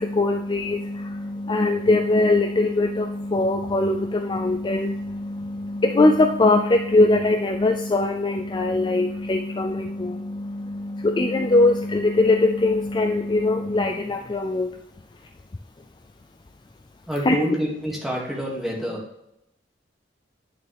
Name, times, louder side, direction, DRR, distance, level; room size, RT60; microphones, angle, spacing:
voice 1, 0.0-14.7 17.3-17.4, left 2 dB, 25° left, 5 dB, 0.4 m, -21 dB
voice 2, 17.1-19.0, equal, ahead, -4 dB, 2.3 m, -27 dB
10.0 x 6.6 x 3.5 m, 0.81 s
head